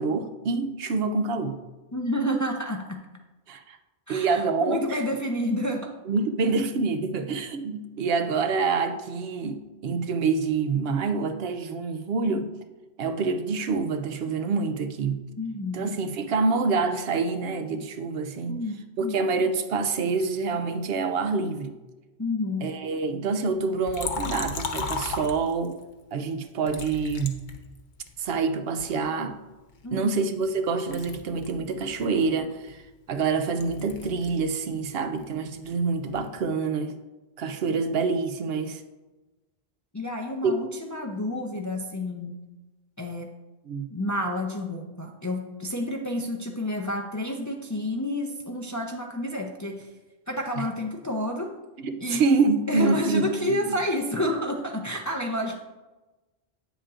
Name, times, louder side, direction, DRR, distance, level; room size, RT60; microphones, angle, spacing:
voice 1, 0.0-1.6 3.5-3.8 4.1-5.0 6.1-12.5 13.0-15.2 15.7-18.6 19.0-21.8 22.6-25.8 26.1-27.4 28.2-29.4 29.9-32.8 33.1-37.0 37.4-38.8 40.4-40.5 43.7-43.9 51.8-53.8, right 4 dB, 75° right, 8 dB, 0.8 m, -26 dB
voice 2, 1.9-3.0 4.1-5.9 15.4-15.9 18.5-19.2 22.2-22.7 29.8-30.2 39.9-42.4 43.0-43.3 43.9-49.9 50.3-51.5 52.0-55.6, left 1 dB, 25° left, 2 dB, 0.4 m, -29 dB
Liquid, 23.9-25.8 26.7-28.2 28.8-30.5 30.8-34.5 34.8-36.4, left 4 dB, 55° left, 0.8 m, -36 dB
8.6 x 7.2 x 2.5 m, 1.1 s
omnidirectional pair, 1.0 m